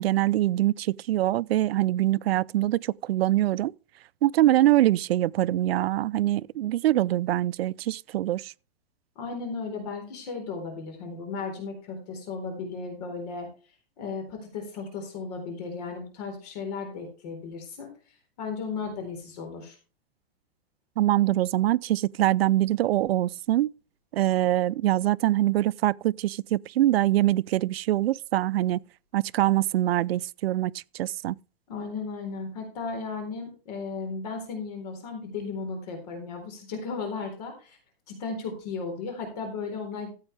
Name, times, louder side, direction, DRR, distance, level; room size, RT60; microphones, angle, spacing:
voice 1, 0.0-3.7 4.2-8.5 21.0-23.7 24.1-28.8 29.1-31.4, right 14 dB, 80° right, 0.5 m, -24 dB
voice 2, 9.2-13.5 14.0-17.9 18.4-19.8 31.7-37.8 38.1-40.1, left 4 dB, 40° left, 4.0 m, -35 dB
14.5 x 8.0 x 3.3 m
supercardioid pair, 175°, 30 cm